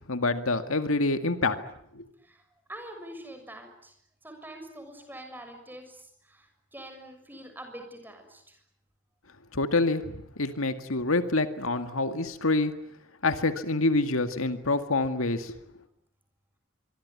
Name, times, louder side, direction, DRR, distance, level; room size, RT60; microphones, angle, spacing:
voice 1, 0.1-1.6 2.0-2.1 9.5-12.7 13.2-15.6, left 2 dB, 75° left, 9 dB, 2.0 m, -26 dB
voice 2, 2.7-3.9 4.2-8.6, right 1 dB, 10° right, 5 dB, 6.7 m, -45 dB
25.0 x 24.0 x 9.7 m, 0.71 s
head